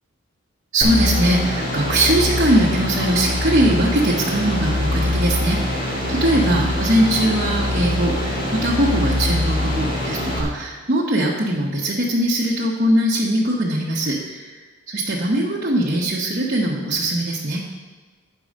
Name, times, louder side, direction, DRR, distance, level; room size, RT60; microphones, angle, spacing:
voice 1, 0.7-14.4 14.9-17.6, right 1 dB, 40° right, -7 dB, 1.1 m, -21 dB
sound 1, 0.8-10.4, left 1 dB, 40° left, 1.6 m, -23 dB
9.6 x 4.7 x 6.4 m, 1.4 s
head